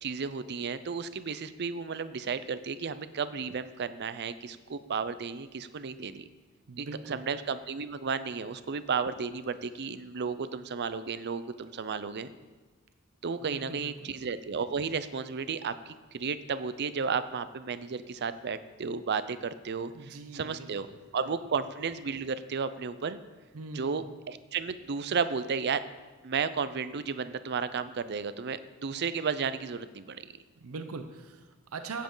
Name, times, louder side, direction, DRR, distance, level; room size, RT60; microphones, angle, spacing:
voice 1, 0.0-6.2 6.8-12.3 13.2-20.9 21.1-23.2 23.7-25.8 26.2-30.2, right 5 dB, 50° right, 13 dB, 0.5 m, -33 dB
voice 2, 6.7-7.2 13.4-14.2 19.9-21.3 23.5-24.1 30.6-32.0, right 3 dB, 85° right, 8 dB, 0.7 m, -42 dB
15.0 x 7.5 x 3.9 m, 1.3 s
head